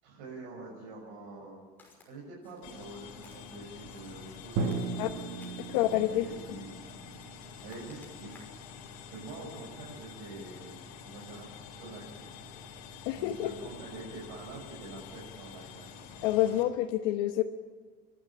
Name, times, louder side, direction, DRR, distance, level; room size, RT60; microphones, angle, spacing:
voice 1, 0.0-1.7 2.0-6.8 7.6-8.6 9.1-12.3 13.1-16.0, right 2 dB, 85° right, -4 dB, 6.6 m, -46 dB
Walk footsteps, 1.8-2.1 2.4-2.8 3.2-4.2 4.6-5.7 6.1-6.4 6.8-7.2 7.5-8.7 9.1-9.3, left 2 dB, 10° left, 5.8 m, -60 dB
sound 1, 2.6-16.6, left 6 dB, 55° left, 4.3 m, -48 dB
Drum, 4.6-8.3, right 4 dB, 45° right, 1.6 m, -37 dB
voice 2, 5.6-6.3 13.0-13.5 16.2-17.4, left 14 dB, 85° left, 4 dB, 1.2 m, -28 dB
29.0 x 12.5 x 8.9 m, 1.5 s
cardioid pair, 175°, 18 cm